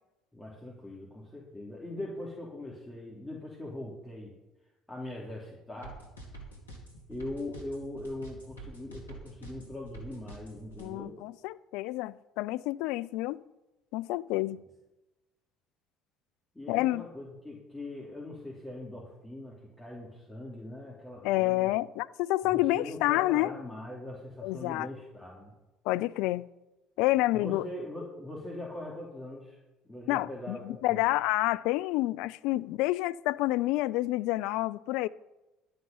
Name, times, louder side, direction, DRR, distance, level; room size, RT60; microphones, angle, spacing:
voice 1, 0.3-4.3 4.9-6.0 7.1-11.2 16.5-21.7 22.4-25.5 27.1-29.6 29.9-31.1, left 1 dB, 10° left, 3.2 m, -41 dB
sound 1, 5.8-10.9, right 1 dB, 90° left, 2.2 m, -47 dB
voice 2, 10.8-13.4 13.9-14.6 16.7-17.0 21.2-23.5 24.4-24.9 25.9-26.5 27.0-27.6 30.1-35.1, left 18 dB, 65° left, 0.3 m, -28 dB
12.0 x 8.7 x 5.5 m
figure-of-eight pair, 60°, 0 cm